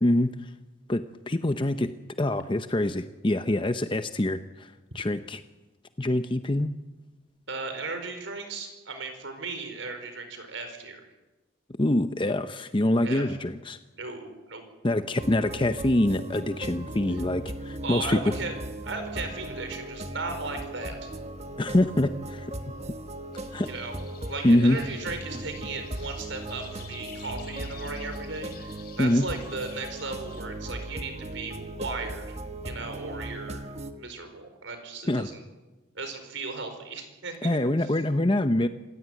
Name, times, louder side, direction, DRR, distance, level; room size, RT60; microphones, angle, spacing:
voice 1, 0.0-0.5 0.9-1.9 2.2-5.4 6.0-6.7 11.8-13.8 14.8-18.2 21.6-22.5 23.5-23.7 24.4-24.8 29.0-29.3 35.1-35.3 37.4-38.7, left 1 dB, 25° left, 9 dB, 0.7 m, -25 dB
voice 2, 7.5-11.1 13.0-13.2 14.0-14.6 17.8-18.6 18.8-21.1 23.6-23.9 24.3-32.2 32.6-33.6 33.9-35.4 35.9-37.9, right 3 dB, 75° right, 7 dB, 4.8 m, -36 dB
sound 1, 15.2-33.9, right 1 dB, 35° right, 1.4 m, -38 dB
sound 2, 23.3-30.4, left 8 dB, 50° left, 3.9 m, -50 dB
27.0 x 16.0 x 9.3 m, 1.2 s
head